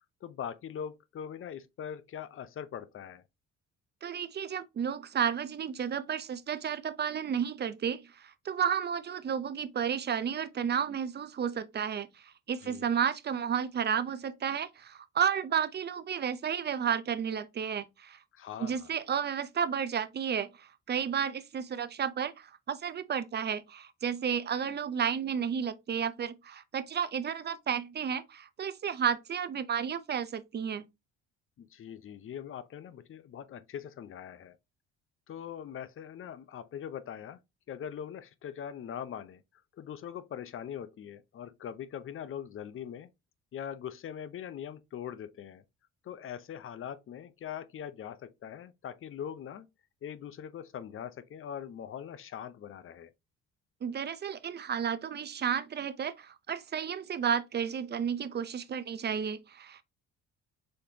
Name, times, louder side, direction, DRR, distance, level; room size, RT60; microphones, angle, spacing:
voice 1, 0.2-3.2 12.6-12.9 18.3-18.9 31.6-34.6 35.3-37.4 37.7-39.4 39.8-43.1 43.5-45.6 46.0-49.7 50.0-53.1, left 9 dB, 45° left, 0.6 m, -42 dB
voice 2, 4.0-18.2 18.6-30.8 53.8-59.8, right 7 dB, 35° right, 0.5 m, -32 dB
4.2 x 3.3 x 2.8 m
supercardioid pair, 80°, 31 cm